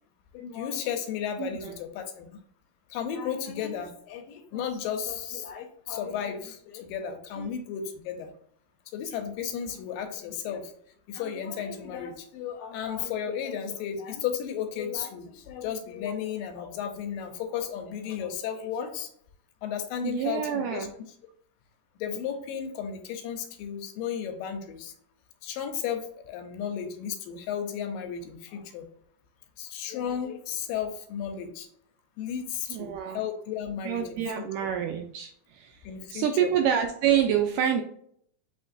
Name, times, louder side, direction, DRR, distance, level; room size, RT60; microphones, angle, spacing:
voice 1, 0.3-2.3 2.9-8.3 8.9-10.7 11.1-19.1 19.6-20.9 22.0-24.9 25.4-28.8 29.6-31.7 32.2-34.5 35.8-36.5, left 8 dB, 80° left, 6 dB, 2.2 m, -34 dB
voice 2, 1.4-1.7 7.4-7.5 20.0-20.9 32.7-33.2 33.8-35.8 36.1-37.8, right 9 dB, 80° right, 4 dB, 1.9 m, -27 dB
6.3 x 3.1 x 2.5 m, 0.64 s
omnidirectional pair, 4.1 m